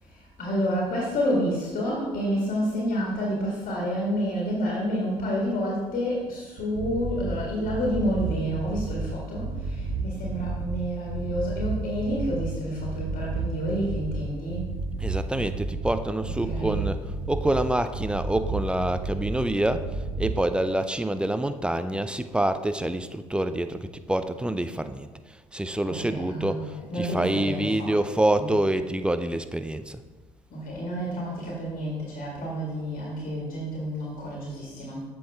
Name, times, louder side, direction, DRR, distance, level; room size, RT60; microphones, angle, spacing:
voice 1, 0.0-14.7 16.4-16.9 25.8-28.6 30.5-35.0, equal, 55° left, -4 dB, 1.8 m, -29 dB
sound 1, 6.6-7.3 7.6-9.0 9.4-10.7 11.1-12.5 12.8-14.2 14.5-15.9 16.2-17.6 17.9-19.3 19.6-20.3, right 3 dB, 80° right, 1.3 m, -31 dB
voice 2, 15.0-30.0, right 1 dB, 5° right, 11 dB, 0.4 m, -27 dB
7.6 x 5.4 x 3.5 m, 1.3 s
hypercardioid pair, 55°, 17 cm